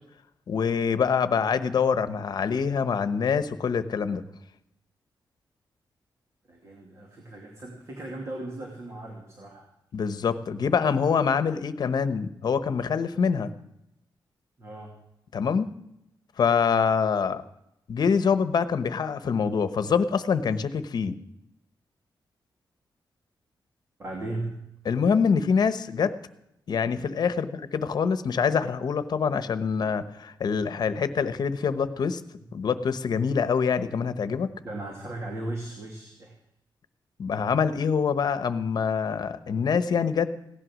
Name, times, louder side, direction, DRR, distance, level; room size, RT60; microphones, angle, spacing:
voice 1, 0.5-4.2 9.9-13.5 15.3-15.7 16.4-17.4 17.9-21.1 24.8-26.1 26.7-32.2 32.5-34.5 37.2-40.3, left 6 dB, 60° left, 12 dB, 1.0 m, -25 dB
voice 2, 6.5-9.6 14.6-14.9 24.0-24.6 34.6-36.3, right 2 dB, 40° right, 0 dB, 2.7 m, -37 dB
17.0 x 11.0 x 6.3 m, 0.83 s
wide cardioid pair, 140°, 8 cm